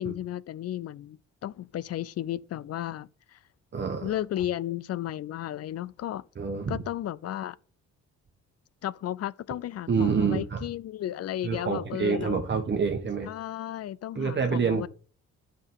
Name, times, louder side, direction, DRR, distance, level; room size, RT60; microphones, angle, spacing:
voice 1, 0.0-3.4 4.0-6.2 6.7-7.6 8.8-12.4 13.3-14.9, left 12 dB, 55° left, 0.5 m, -34 dB
voice 2, 3.7-4.2 6.4-6.8 9.9-10.6 11.4-13.3 14.1-14.9, right 5 dB, 35° right, 1.3 m, -27 dB
9.0 x 6.0 x 5.7 m
cardioid pair, 90°, 30 cm